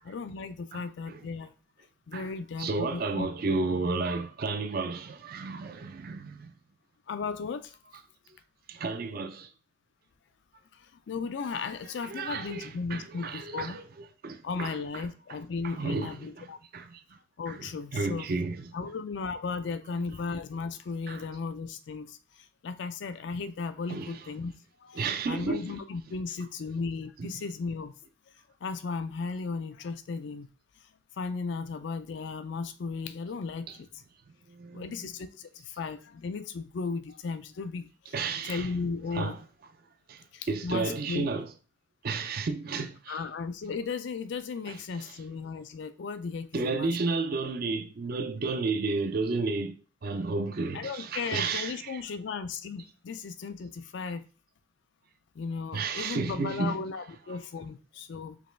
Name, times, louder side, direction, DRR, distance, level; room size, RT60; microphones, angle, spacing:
voice 1, 0.0-1.5 2.1-3.3 7.1-7.8 10.7-13.8 14.4-16.6 17.4-18.3 18.7-24.5 24.8-27.9 28.3-28.4 28.6-30.5 30.8-30.9 31.2-34.0 34.7-38.2 38.4-39.4 40.3-41.3 43.1-47.0 50.7-54.2 55.3-58.4, left 4 dB, 60° left, 0.4 m, -36 dB
voice 2, 0.7-1.2 2.1-6.5 8.7-9.5 12.0-15.1 15.6-16.5 16.7-17.0 17.5-18.9 19.9-20.1 21.1-21.2 23.9-24.2 24.9-25.8 27.2-27.3 33.7-33.8 34.5-35.1 38.1-39.4 40.1-41.5 42.0-43.3 44.7-44.8 45.0-45.1 46.5-49.8 50.0-52.0 55.7-56.8, right 3 dB, 45° right, 0.4 m, -32 dB
5.1 x 2.3 x 3.2 m
head